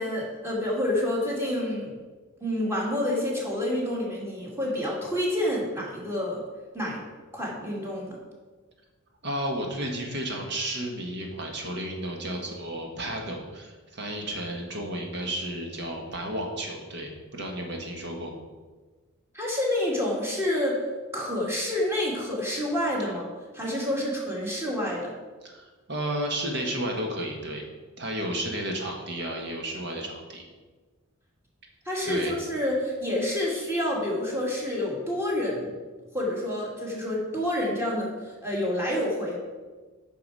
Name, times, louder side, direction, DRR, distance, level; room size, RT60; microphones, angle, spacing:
voice 1, 0.0-2.0 2.4-6.4 6.7-7.0 7.3-8.2 19.3-20.8 21.1-25.1 31.9-35.7 36.1-39.4, left 1 dB, 10° right, -4 dB, 2.3 m, -28 dB
voice 2, 9.2-18.3 25.4-27.6 28.0-30.4 32.0-32.3, right 1 dB, 55° right, 1 dB, 1.6 m, -32 dB
9.5 x 5.9 x 4.8 m, 1.3 s
head